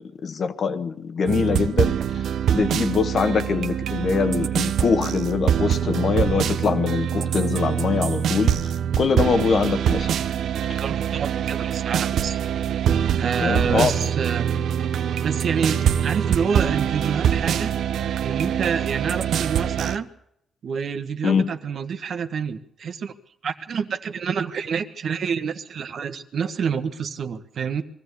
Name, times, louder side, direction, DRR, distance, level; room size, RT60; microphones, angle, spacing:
voice 1, 0.0-2.2 2.5-10.1 10.7-10.8 13.4-14.1 21.2-21.5, left 5 dB, 55° left, 1.5 m, -23 dB
sound 1, 1.3-20.0, right 9 dB, 80° right, 0.8 m, -24 dB
voice 2, 10.8-12.4 13.2-14.6 15.2-17.7 18.2-20.1 20.6-23.1 23.4-27.8, right 6 dB, 60° right, 1.4 m, -27 dB
22.5 x 14.5 x 8.4 m
cardioid pair, 90°, 0 cm